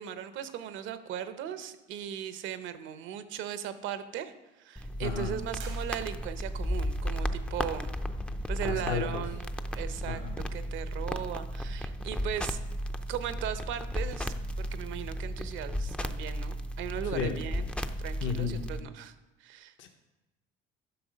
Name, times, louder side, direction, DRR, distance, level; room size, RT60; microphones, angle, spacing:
voice 1, 0.0-7.9 8.5-9.5 9.7-10.2 10.5-12.6 13.1-17.7 18.0-19.1 19.4-19.7, right 10 dB, 65° right, 11 dB, 0.9 m, -38 dB
sound 1, 4.8-18.8, equal, 5° left, 0.5 m, -34 dB
voice 2, 5.0-5.3 8.6-9.2 10.1-10.3 17.1-17.4 18.2-18.6 19.8-19.9, left 7 dB, 65° left, 4 dB, 1.0 m, -32 dB
sound 2, 5.5-6.6, right 6 dB, 90° right, 1.9 m, -50 dB
11.5 x 6.1 x 5.2 m, 1.0 s
supercardioid pair, 100°, 21 cm